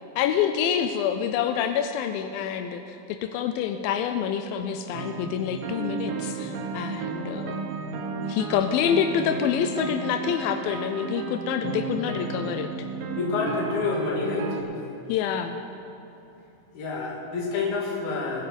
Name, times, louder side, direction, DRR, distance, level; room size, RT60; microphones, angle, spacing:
voice 1, 0.2-7.6 8.2-12.9 15.1-15.6, left 8 dB, 90° left, 7 dB, 2.4 m, -27 dB
sound 1, 4.9-14.6, right 5 dB, 85° right, 2.7 m, -33 dB
voice 2, 13.1-14.6 16.7-18.5, left 4 dB, 60° left, -2 dB, 3.1 m, -28 dB
20.0 x 7.6 x 5.2 m, 2.8 s
omnidirectional pair, 4.1 m